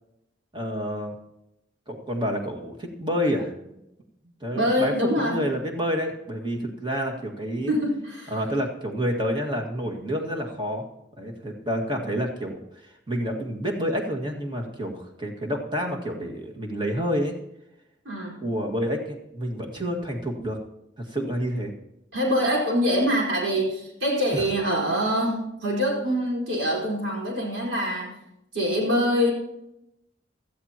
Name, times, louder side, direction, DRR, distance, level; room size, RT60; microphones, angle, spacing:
voice 1, 0.5-1.1 1.9-3.5 4.4-7.7 8.3-10.8 11.2-17.3 18.4-20.6 21.0-21.7 24.3-24.4, equal, 25° right, 2 dB, 1.9 m, -29 dB
voice 2, 4.5-5.4 7.7-8.3 18.0-18.4 22.1-28.2 28.5-29.3, equal, 70° right, -3 dB, 4.5 m, -24 dB
16.5 x 13.5 x 2.9 m, 0.85 s
head